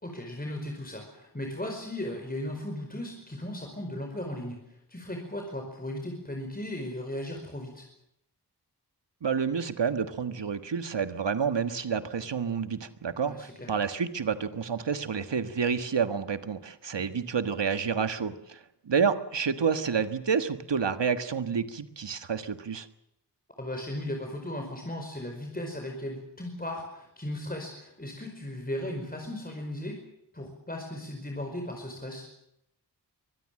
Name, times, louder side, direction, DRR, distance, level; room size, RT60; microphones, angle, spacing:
voice 1, 0.0-7.9 13.3-13.7 23.6-30.0 30.3-32.3, left 1 dB, 20° left, 2 dB, 5.0 m, -36 dB
voice 2, 9.2-18.6 18.8-22.9, right 6 dB, 90° right, 10 dB, 1.5 m, -29 dB
24.0 x 19.5 x 7.6 m, 0.78 s
wide cardioid pair, 55°, 42 cm